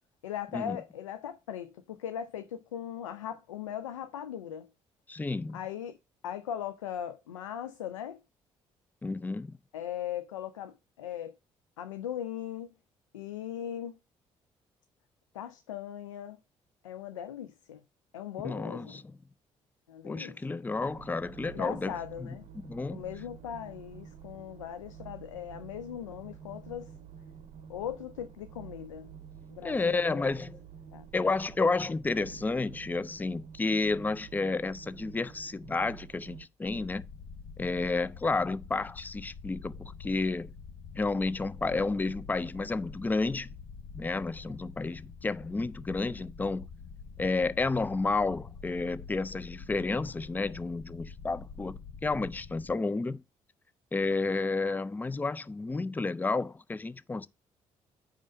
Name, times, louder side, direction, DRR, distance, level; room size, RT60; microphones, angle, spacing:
voice 1, 0.2-4.7 5.5-6.0 6.2-8.2 9.7-11.4 11.8-12.7 13.1-14.0 15.3-16.4 16.8-17.8 18.1-19.0 19.9-20.4 21.4-22.5 22.9-26.9 27.7-29.1 29.5-30.2 30.9-31.1, left 10 dB, 80° left, 0.4 m, -39 dB
voice 2, 5.1-5.6 9.0-9.5 18.4-19.1 20.0-21.9 22.2-23.0 29.6-30.6 31.1-37.0 37.6-40.5 40.9-43.5 43.9-46.6 47.2-53.2 53.9-57.3, left 3 dB, 10° left, 0.4 m, -31 dB
sound 1, 20.8-36.5, right 7 dB, 45° right, 0.7 m, -49 dB
sound 2, 36.6-52.8, left 5 dB, 55° left, 0.7 m, -46 dB
5.3 x 5.1 x 6.1 m
figure-of-eight pair, 45°, 16 cm